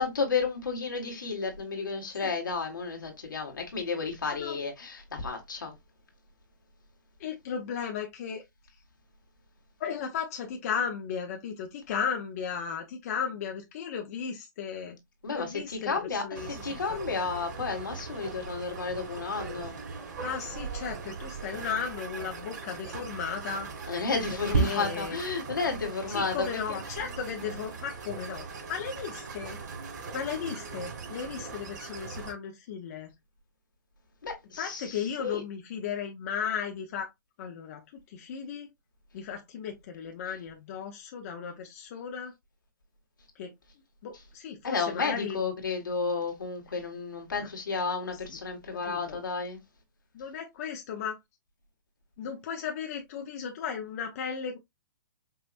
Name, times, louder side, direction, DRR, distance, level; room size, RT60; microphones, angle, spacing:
voice 1, 0.0-5.7 15.2-19.8 23.9-26.5 34.2-35.4 44.6-49.6, left 4 dB, 85° left, 1.8 m, -32 dB
voice 2, 4.2-4.6 7.2-8.4 9.8-15.0 15.3-17.0 20.2-23.7 24.5-25.2 26.1-29.6 30.1-33.1 34.6-37.1 37.4-38.7 39.1-42.3 43.4-43.5 44.0-45.4 47.4-47.5 48.3-48.4 48.7-49.2 50.1-51.2 52.2-54.6, left 7 dB, 50° left, 0.9 m, -35 dB
sound 1, 16.4-32.3, right 4 dB, 60° right, 3.0 m, -37 dB
5.6 x 2.8 x 2.6 m
hypercardioid pair, 135°, 10 cm